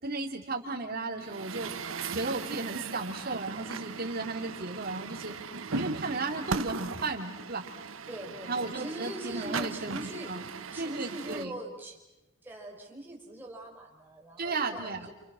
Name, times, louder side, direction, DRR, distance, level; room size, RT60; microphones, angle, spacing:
voice 1, 0.0-1.7 2.1-5.4 5.8-7.6 8.5-10.0 10.3-10.5 10.8-11.5 14.4-15.1, right 3 dB, 50° right, 1 dB, 3.2 m, -34 dB
Truck, 1.2-11.4, right 4 dB, 75° right, 1.0 m, -38 dB
voice 2, 8.1-10.3 10.7-12.0 12.4-15.1, right 1 dB, 10° right, -1 dB, 5.7 m, -42 dB
29.5 x 29.0 x 6.5 m, 0.98 s
head